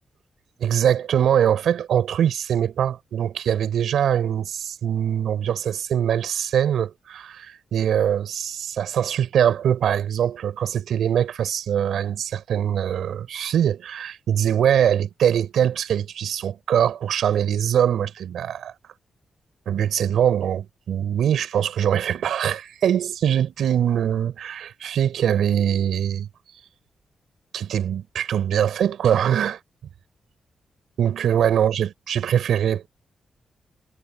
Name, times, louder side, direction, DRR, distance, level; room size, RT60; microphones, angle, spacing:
voice 1, 0.6-18.9 19.7-26.3 27.5-29.6 31.0-33.0, right 9 dB, 90° right, 4.6 m, -22 dB
cardioid pair, 105°, 0 cm